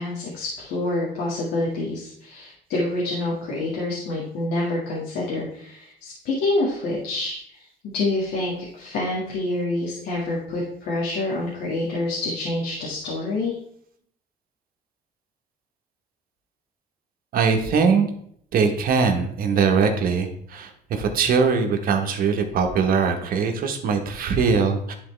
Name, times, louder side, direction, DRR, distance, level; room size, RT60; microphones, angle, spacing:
voice 1, 0.0-7.7 7.9-13.6, left 2 dB, 75° left, -4 dB, 1.8 m, -27 dB
voice 2, 17.3-18.1 18.5-24.9, right 5 dB, 60° right, 4 dB, 1.2 m, -21 dB
10.0 x 4.0 x 3.3 m, 0.66 s
cardioid pair, 110°, 17 cm